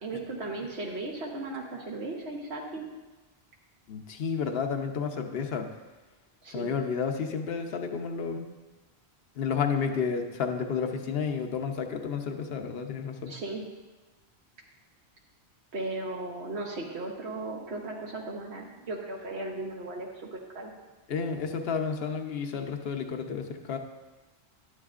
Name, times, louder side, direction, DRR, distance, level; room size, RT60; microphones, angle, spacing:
voice 1, 0.0-2.9 6.4-6.7 13.3-13.6 15.7-20.7, right 2 dB, 85° right, -1 dB, 1.3 m, -36 dB
voice 2, 3.9-5.7 6.5-8.5 9.4-13.3 21.1-23.8, left 6 dB, 70° left, 5 dB, 1.0 m, -31 dB
11.5 x 9.9 x 2.5 m, 1.2 s
omnidirectional pair, 1.1 m